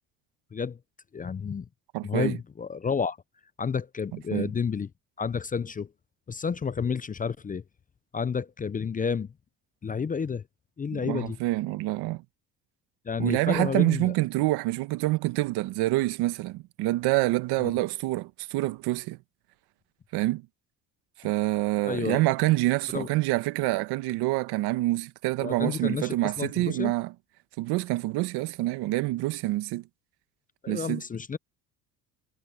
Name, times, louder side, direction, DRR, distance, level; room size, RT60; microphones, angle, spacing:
voice 1, 1.1-1.7 2.0-3.2 3.6-4.9 5.2-5.9 6.3-7.6 8.1-9.3 9.8-10.4 10.8-11.4 13.1-14.1 17.6-17.7 21.8-22.2 22.9-23.1 25.4-26.9 30.6-31.4, left 6 dB, 20° left, 0.5 m, -30 dB
voice 2, 1.9-2.4 4.1-4.5 10.9-12.2 13.2-19.2 20.1-20.4 21.2-27.1 27.6-29.8 30.7-31.0, right 18 dB, 80° right, 1.3 m, -27 dB
supercardioid pair, 85°, 39 cm